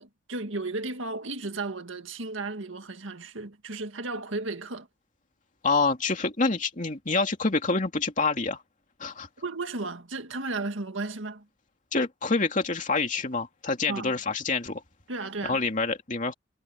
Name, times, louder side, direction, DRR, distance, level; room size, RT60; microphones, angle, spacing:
voice 1, 0.0-4.9 9.4-11.5 13.9-14.1 15.1-15.6, right 3 dB, 90° right, 2.0 m, -34 dB
voice 2, 5.6-8.6 9.0-9.3 11.9-14.8 15.4-16.3, left 3 dB, 40° left, 2.7 m, -27 dB
head